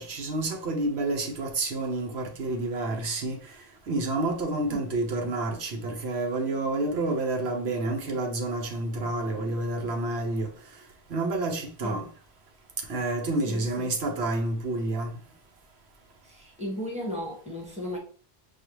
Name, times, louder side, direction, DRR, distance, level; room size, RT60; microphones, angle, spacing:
voice 1, 0.0-3.4 3.9-10.5 11.1-12.1 12.9-15.1, right 2 dB, 85° right, 1.1 m, -29 dB
voice 2, 13.5-13.9 16.2-18.0, equal, 5° right, 1.3 m, -35 dB
6.5 x 2.4 x 3.1 m
omnidirectional pair, 1.1 m